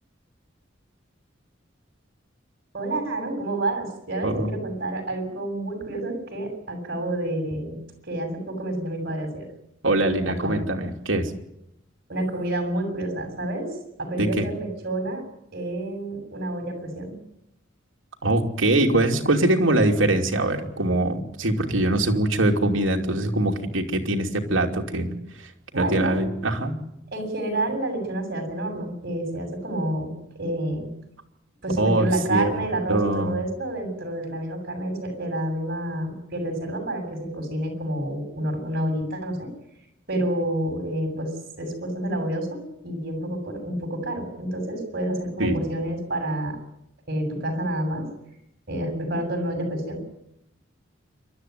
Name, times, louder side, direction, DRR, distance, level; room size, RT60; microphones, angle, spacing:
voice 1, 2.7-7.8 8.1-9.5 10.2-10.6 12.1-13.7 14.0-15.2 15.5-17.1 25.7-26.2 27.1-30.9 31.6-39.5 40.1-41.3 41.6-46.6 47.1-48.1 48.7-50.0, right 1 dB, 55° right, 4 dB, 7.2 m, -29 dB
voice 2, 9.8-11.3 14.2-14.5 18.2-25.1 25.7-26.8 31.8-32.6 32.9-33.4 45.4-45.6, right 1 dB, 85° right, 2 dB, 2.9 m, -23 dB
28.0 x 13.0 x 9.5 m, 0.83 s
head